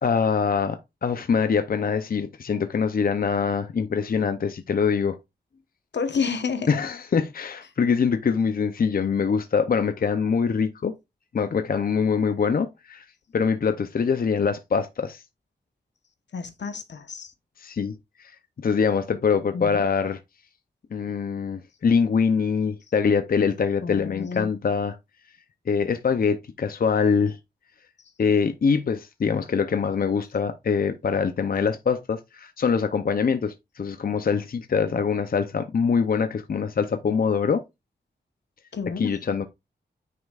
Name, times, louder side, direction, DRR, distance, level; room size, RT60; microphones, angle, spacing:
voice 1, 0.0-5.2 6.7-10.9 11.3-13.0 13.3-15.2 17.6-18.3 18.6-20.2 20.9-25.0 25.7-27.4 28.2-37.6 39.0-39.4, left 6 dB, 55° left, 0.6 m, -24 dB
voice 2, 5.9-6.7 16.3-17.3 19.5-19.8 23.8-24.5 38.7-39.1, left 5 dB, 80° left, 1.1 m, -30 dB
9.4 x 5.4 x 2.4 m
wide cardioid pair, 115°, 18 cm